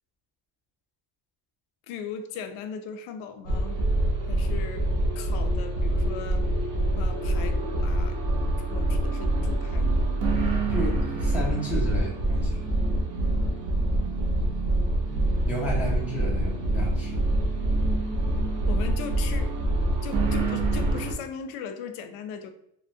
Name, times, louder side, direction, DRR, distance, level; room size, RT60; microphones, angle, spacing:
voice 1, 1.9-3.9 4.3-4.9 5.1-6.4 7.0-8.2 8.7-10.2 18.6-19.5 20.0-22.5, left 6 dB, 85° left, 7 dB, 0.5 m, -38 dB
sound 1, 3.5-21.1, right 1 dB, 65° right, 0.7 m, -25 dB
voice 2, 10.7-12.6 15.4-17.2, equal, 5° right, -5 dB, 0.3 m, -32 dB
2.9 x 2.1 x 2.6 m, 0.75 s
cardioid pair, 165°, 47 cm